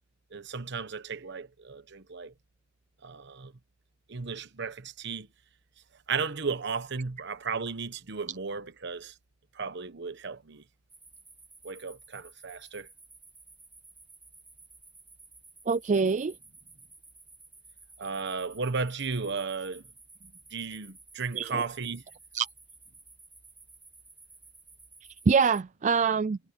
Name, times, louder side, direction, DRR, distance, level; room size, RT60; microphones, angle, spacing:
voice 1, 0.3-2.3 3.0-3.5 4.1-5.3 6.1-9.1 9.5-10.6 11.6-12.9 18.0-19.8 20.5-22.0, right 4 dB, 60° right, 1.1 m, -34 dB
sound 1, 10.9-25.6, right 3 dB, 10° right, 5.7 m, -54 dB
voice 2, 15.7-16.3 21.3-21.6 22.3-22.5 25.3-26.4, right 5 dB, 40° right, 0.4 m, -24 dB
head